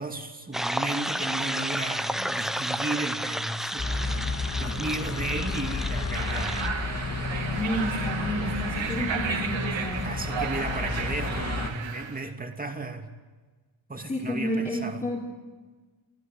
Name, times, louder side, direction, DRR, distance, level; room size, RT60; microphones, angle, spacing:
voice 1, 0.0-3.9 4.6-6.6 10.0-13.1 13.9-15.0, right 2 dB, 20° right, 4 dB, 2.6 m, -34 dB
sound 1, 0.5-6.7, equal, ahead, 0.8 m, -32 dB
sound 2, 3.8-11.7, left 3 dB, 35° left, 2.0 m, -31 dB
sound 3, 6.1-12.3, right 6 dB, 70° right, 2.4 m, -33 dB
voice 2, 7.5-10.0 14.1-15.3, equal, 20° left, -4 dB, 3.8 m, -30 dB
25.5 x 15.0 x 9.2 m, 1.3 s
cardioid pair, 110°, 47 cm